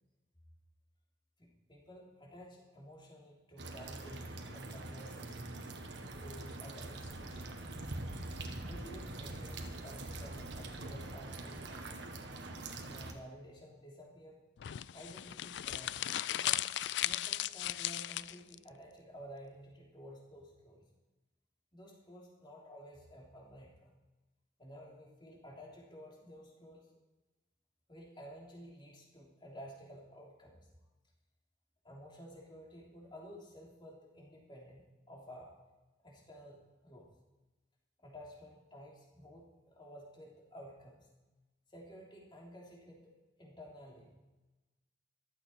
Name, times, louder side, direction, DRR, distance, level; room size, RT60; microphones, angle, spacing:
voice 1, 1.4-5.4 6.2-7.6 8.6-11.9 12.8-14.4 14.9-16.6 17.0-20.8 21.7-23.9 24.6-26.9 27.9-30.6 31.8-35.5 36.0-37.1 38.0-41.1 41.7-44.1, equal, 25° left, -2 dB, 3.2 m, -53 dB
sound 1, 3.6-13.1, right 2 dB, 70° right, 1.6 m, -44 dB
sound 2, 14.6-18.6, left 13 dB, 70° left, 0.4 m, -36 dB
15.0 x 12.5 x 4.5 m, 1.1 s
head